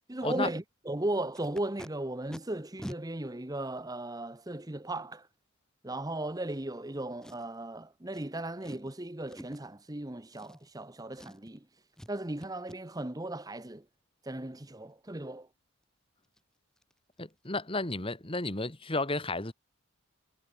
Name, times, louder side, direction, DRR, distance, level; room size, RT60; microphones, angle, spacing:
voice 1, 0.1-5.3 5.8-11.6 12.1-13.8 14.2-15.5, right 1 dB, 15° right, 0.9 m, -36 dB
Packing tape duct tape, 1.3-1.9 2.3-2.4 2.8-3.0 3.8-3.9 7.2-7.6 8.1-8.2 8.6-8.9 9.3-9.7 10.3-10.9 11.1-11.6 12.0-12.1 12.4-12.8 15.8-15.9 16.2-16.4 16.8-16.9 17.2-17.4 17.7-17.8, equal, 5° left, 4.9 m, -46 dB
voice 2, 17.2-19.5, left 2 dB, 25° left, 1.8 m, -32 dB
head